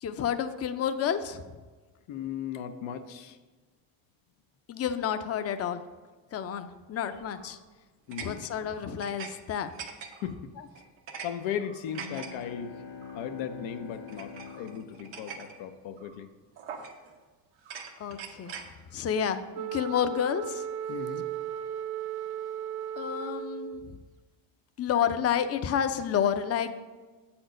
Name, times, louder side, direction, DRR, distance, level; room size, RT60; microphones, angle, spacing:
voice 1, 0.0-1.4 4.7-5.8 6.3-7.6 8.2-9.7 18.0-18.5 18.9-20.7 23.0-24.0 24.8-26.7, left 8 dB, 35° left, 9 dB, 0.5 m, -30 dB
voice 2, 2.1-3.4 8.1-8.4 10.2-10.5 11.2-12.7 13.1-16.3 20.9-21.3, left 8 dB, 85° left, 7 dB, 0.7 m, -37 dB
sound 1, 7.2-7.6 8.1-9.3 9.6-10.3 10.7-11.3 11.6-12.3 13.0-13.2 14.1-15.6 16.0-16.2 16.6-17.2 17.6-18.7, right 6 dB, 80° right, 1.0 m, -43 dB
sound 2, 11.8-15.8, left 6 dB, 65° left, 1.4 m, -45 dB
Wind instrument woodwind instrument, 19.5-23.9, right 8 dB, 60° right, 0.6 m, -36 dB
7.6 x 4.4 x 5.0 m, 1.3 s
supercardioid pair, 80°, 44 cm